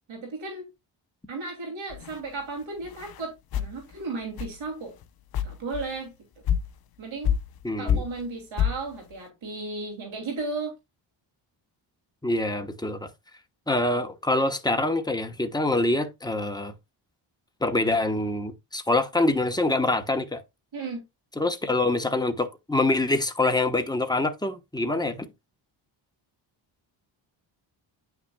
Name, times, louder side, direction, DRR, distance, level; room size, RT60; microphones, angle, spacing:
voice 1, 0.1-0.6 1.3-5.0 5.4-6.1 7.0-7.3 7.8-10.7 20.7-21.0, right 3 dB, 85° right, 2.8 m, -35 dB
sound 1, 1.9-2.2 2.9-3.2 3.5-3.7 4.4-4.6 5.0-5.1 5.3-5.9 6.5-6.7 7.2-7.6 7.9-8.2 8.6-8.8, left 8 dB, 55° left, 0.6 m, -27 dB
voice 2, 7.6-8.0 12.2-13.1 13.7-16.7 17.6-20.4 21.4-25.3, left 2 dB, 10° left, 1.1 m, -25 dB
9.5 x 5.9 x 2.3 m
cardioid pair, 100°, 46 cm